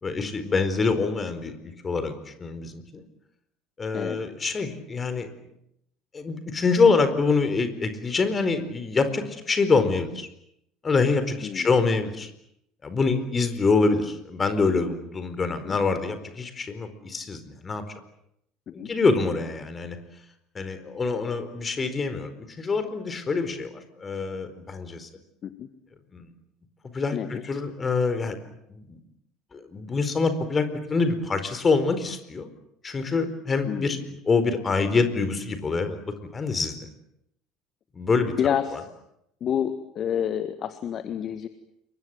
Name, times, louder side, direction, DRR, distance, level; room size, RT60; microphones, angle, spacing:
voice 1, 0.0-3.0 3.8-5.3 6.1-10.3 10.8-12.3 12.8-17.8 18.7-20.0 20.5-25.1 26.1-26.3 26.9-28.4 28.7-29.0 29.5-32.5 32.8-36.9 37.9-38.3 38.7-38.8, left 4 dB, 25° left, 10 dB, 4.5 m, -25 dB
voice 2, 27.1-27.4 33.7-34.0 38.4-38.8 39.4-41.5, left 9 dB, 45° left, 11 dB, 1.7 m, -29 dB
28.5 x 23.5 x 7.9 m, 0.78 s
figure-of-eight pair, 65°, 0 cm